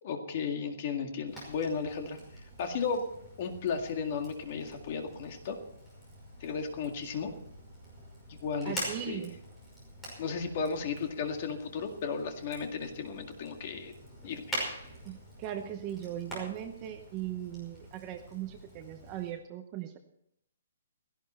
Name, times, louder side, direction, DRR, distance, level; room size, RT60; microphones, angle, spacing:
voice 1, 0.0-3.0 3.4-5.6 6.4-7.3 8.3-9.3 10.2-13.9 14.2-14.6, left 5 dB, 30° left, 5 dB, 2.0 m, -35 dB
Fire, 1.3-19.3, equal, 5° left, 5.6 m, -45 dB
voice 2, 8.6-9.3 15.0-20.0, right 11 dB, 15° right, 6 dB, 0.8 m, -39 dB
17.0 x 16.0 x 4.4 m, 0.72 s
hypercardioid pair, 180°, 0 cm